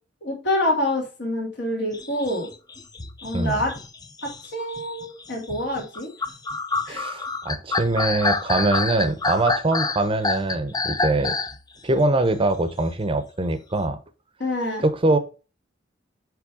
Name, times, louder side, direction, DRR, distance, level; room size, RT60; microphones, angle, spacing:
voice 1, 0.2-2.5 3.2-3.7 4.2-6.1 6.9-7.0 14.4-14.8, left 1 dB, 60° left, 2.7 m, -26 dB
sound 1, 1.9-11.6, left 3 dB, 20° left, 0.6 m, -28 dB
voice 2, 6.9-11.3 11.8-14.0 14.8-15.2, right 2 dB, 30° right, 0.8 m, -23 dB
8.4 x 3.4 x 4.9 m
head